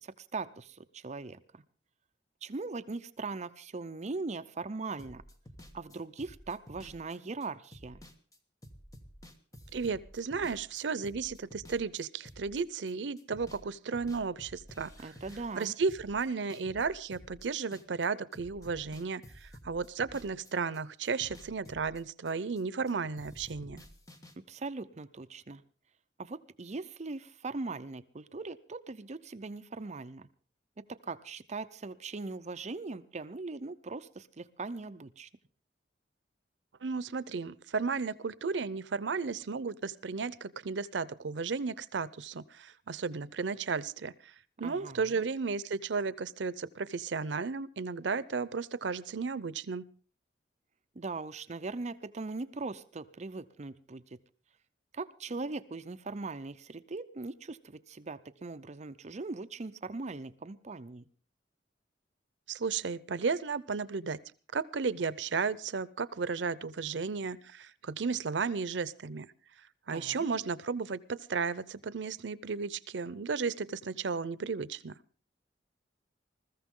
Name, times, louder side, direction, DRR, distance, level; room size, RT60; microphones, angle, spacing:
voice 1, 0.0-1.6 2.4-5.2 5.7-8.0 15.0-15.7 24.4-25.6 26.2-30.3 30.9-35.3 44.6-45.3 50.9-54.2 54.9-61.0 69.9-70.3, right 3 dB, 40° right, 12 dB, 0.6 m, -40 dB
sound 1, 5.0-12.9 13.2-13.7 13.9-18.1 18.3-20.8 21.0-22.9 23.2-24.3, equal, 20° left, 1.5 m, -52 dB
voice 2, 9.7-14.9 15.5-23.8 36.8-44.1 44.6-49.9 62.5-64.2 64.5-69.3 69.9-74.9, right 5 dB, 85° right, 18 dB, 0.6 m, -34 dB
21.0 x 14.0 x 3.7 m, 0.38 s
head